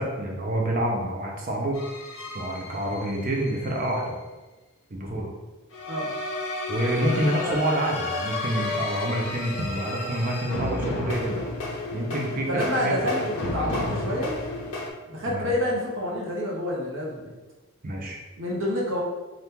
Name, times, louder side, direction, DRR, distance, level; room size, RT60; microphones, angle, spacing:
voice 1, 0.0-1.8 2.3-4.2 4.9-5.3 6.7-11.4 11.9-13.1 15.3-15.5 17.8-18.2, right 1 dB, 40° right, -1 dB, 0.6 m, -27 dB
sound 1, 1.7-4.0 5.7-14.9, left 2 dB, 65° left, 0.6 m, -32 dB
voice 2, 12.5-14.3 15.1-17.3 18.4-19.0, left 1 dB, 60° right, -4 dB, 0.9 m, -28 dB
2.9 x 2.5 x 3.5 m, 1.2 s
head